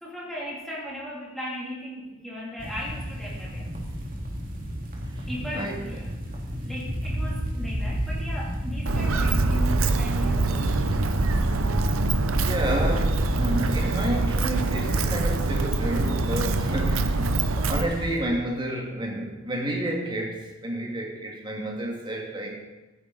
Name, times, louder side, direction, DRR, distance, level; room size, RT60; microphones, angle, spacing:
voice 1, 0.0-3.7 5.3-6.0 6.6-10.8 11.2-11.8, equal, ahead, -6 dB, 2.8 m, -37 dB
sound 1, 2.6-18.2, equal, 45° right, 2.2 m, -33 dB
voice 2, 5.5-6.0 11.5-22.6, right 1 dB, 25° right, 0 dB, 1.9 m, -30 dB
Walk footsteps, 8.9-17.8, right 3 dB, 85° right, 0.7 m, -24 dB
14.0 x 9.9 x 4.0 m, 1.1 s
head